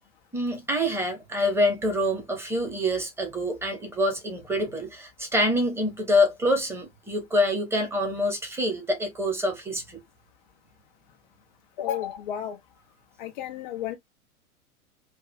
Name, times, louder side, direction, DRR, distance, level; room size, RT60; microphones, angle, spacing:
voice 1, 0.3-10.0, left 1 dB, 5° right, 1.0 m, -26 dB
voice 2, 11.8-12.6 13.2-14.0, left 10 dB, 35° left, 0.4 m, -32 dB
3.2 x 2.4 x 2.2 m
figure-of-eight pair, 105°, 43 cm